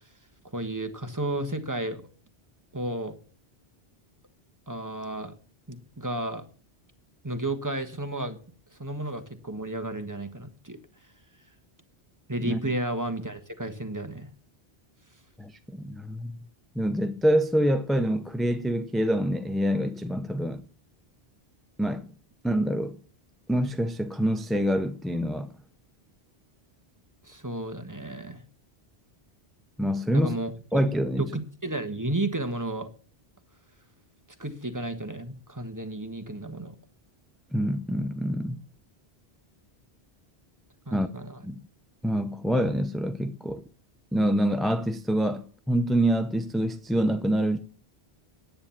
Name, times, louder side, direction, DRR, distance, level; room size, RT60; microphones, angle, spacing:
voice 1, 0.5-2.0 2.7-3.1 4.7-5.3 5.7-6.4 7.2-8.4 8.8-10.8 12.3-14.3 27.2-28.4 30.1-30.5 31.2-32.9 34.4-36.7 40.9-41.4, right 1 dB, 20° right, 1.3 m, -32 dB
voice 2, 15.4-16.3 16.8-20.6 21.8-22.1 22.4-23.0 23.5-25.5 29.8-30.4 30.7-31.3 37.5-38.6 40.9-41.1 41.4-41.5 42.0-43.6 44.1-47.6, equal, ahead, 0.5 m, -26 dB
10.5 x 8.7 x 7.1 m
omnidirectional pair, 1.1 m